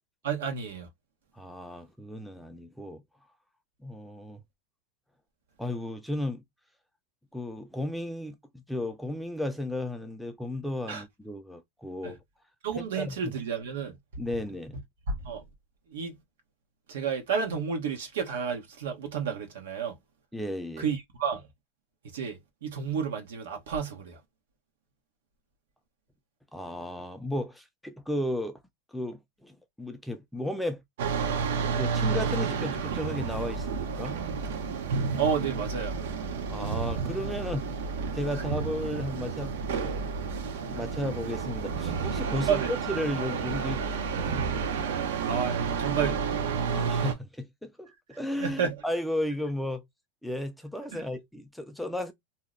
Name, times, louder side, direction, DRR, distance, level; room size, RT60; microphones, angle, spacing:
voice 1, 0.2-0.9 10.9-11.0 12.0-12.1 12.6-13.9 15.1-15.4 15.9-16.1 16.9-20.0 20.8-21.4 22.1-24.2 35.2-36.0 42.5-42.7 45.3-46.4 48.4-48.7 50.9-51.0, right 6 dB, 90° right, 1.0 m, -31 dB
voice 2, 1.3-3.0 3.8-4.4 5.6-6.4 7.3-12.2 12.8-13.3 14.2-14.8 20.3-20.9 26.5-28.6 28.9-30.8 31.7-34.2 36.5-37.7 38.1-40.0 40.3-44.7 46.7-49.8 50.2-52.1, left 1 dB, ahead, 0.3 m, -34 dB
sound 1, 31.0-47.1, right 5 dB, 70° right, 0.7 m, -31 dB
2.7 x 2.0 x 3.7 m
supercardioid pair, 170°, 0 cm